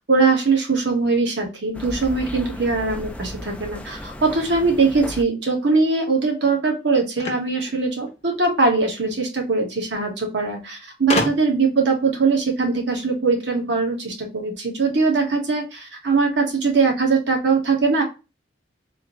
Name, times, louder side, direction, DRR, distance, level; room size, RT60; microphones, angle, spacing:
voice 1, 0.0-18.0, right 4 dB, 65° right, 1 dB, 1.3 m, -21 dB
sound 1, 1.7-5.2, left 1 dB, 5° left, 0.3 m, -35 dB
sound 2, 7.2-8.6 9.7-9.8 10.0-10.1 11.1-11.7, left 2 dB, 35° left, 0.7 m, -27 dB
3.6 x 2.7 x 3.0 m, 0.28 s
head